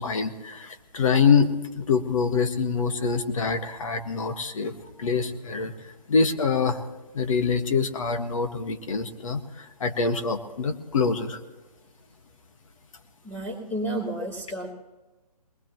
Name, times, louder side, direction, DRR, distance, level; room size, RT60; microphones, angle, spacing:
voice 1, 0.0-4.7 5.0-6.8 7.1-11.4, left 5 dB, 55° left, 6 dB, 1.7 m, -25 dB
voice 2, 13.2-14.7, right 1 dB, 15° left, -5 dB, 2.7 m, -31 dB
21.0 x 19.5 x 3.1 m, 1.1 s
figure-of-eight pair, 145°, 20 cm